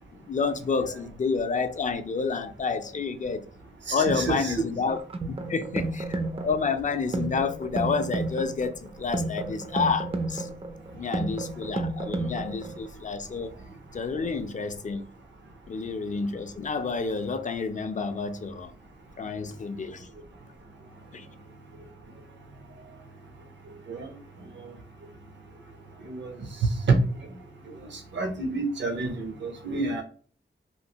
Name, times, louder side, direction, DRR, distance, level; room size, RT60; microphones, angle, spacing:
voice 1, 0.1-3.5 3.9-5.0 5.3-10.5 10.9-13.6 13.9-15.1 15.7-18.7 19.2-20.1 21.1-21.3, left 5 dB, 40° left, 0.4 m, -29 dB
voice 2, 3.9-4.6 6.3-6.4 23.9-24.1 24.6-24.7 26.0-26.3 26.6-27.0 27.9-30.0, right 3 dB, 65° right, 0.7 m, -27 dB
sound 1, 4.9-12.9, right 2 dB, 30° right, 0.4 m, -32 dB
3.1 x 2.5 x 2.8 m
wide cardioid pair, 120°, 20 cm